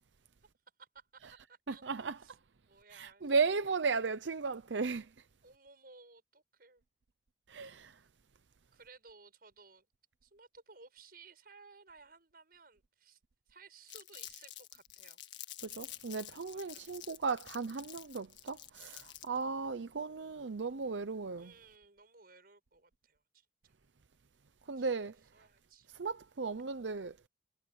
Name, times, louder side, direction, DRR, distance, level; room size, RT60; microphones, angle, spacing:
voice 1, 0.8-1.2 1.5-1.9 2.2-2.4 2.6-3.4 5.4-6.9 8.7-9.9 10.2-13.2 13.5-15.2 16.5-16.9 21.4-23.8 24.8-25.9, right 4 dB, 55° right, 7.1 m, -59 dB
voice 2, 1.7-2.2 2.9-5.1 7.5-8.0 15.6-21.5 24.7-25.2 26.0-27.2, right 4 dB, 85° right, 0.7 m, -35 dB
Crumpling crinkling, 13.9-19.4, left 13 dB, 90° left, 1.9 m, -49 dB
head